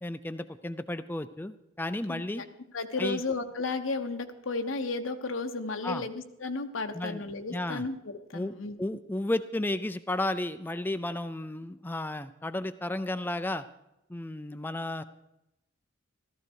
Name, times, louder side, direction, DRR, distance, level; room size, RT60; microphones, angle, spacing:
voice 1, 0.0-2.4 3.0-3.2 5.8-6.0 6.9-7.2 7.5-7.9 8.3-8.5 8.8-13.6 14.1-15.0, left 1 dB, 10° left, 11 dB, 0.4 m, -33 dB
voice 2, 2.1-2.5 2.7-8.7, left 3 dB, 85° left, 7 dB, 1.2 m, -33 dB
14.5 x 14.0 x 4.6 m, 0.88 s
head